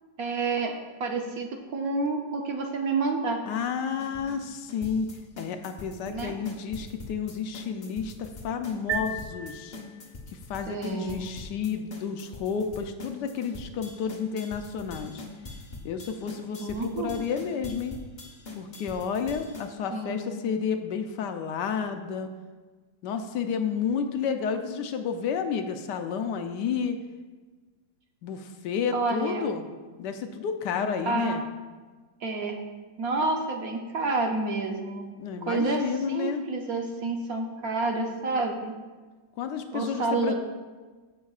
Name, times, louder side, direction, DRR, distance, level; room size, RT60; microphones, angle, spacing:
voice 1, 0.2-0.7 1.0-3.4 6.1-6.4 10.7-11.3 16.6-17.2 19.9-20.3 28.9-29.5 31.0-31.4 32.2-32.6 33.0-35.1 35.4-38.7 39.7-40.3, right 3 dB, 60° right, 2 dB, 1.1 m, -29 dB
voice 2, 3.5-5.1 5.4-9.8 10.3-15.2 15.8-18.0 18.5-22.3 23.0-27.0 28.2-29.7 30.0-31.4 35.2-36.4 39.4-40.3, left 6 dB, 75° left, 7 dB, 1.1 m, -31 dB
sound 1, 3.9-19.7, left 3 dB, 35° left, 0.8 m, -43 dB
sound 2, 8.9-10.4, right 4 dB, 85° right, 1.5 m, -35 dB
14.0 x 6.5 x 2.4 m, 1.3 s
omnidirectional pair, 2.0 m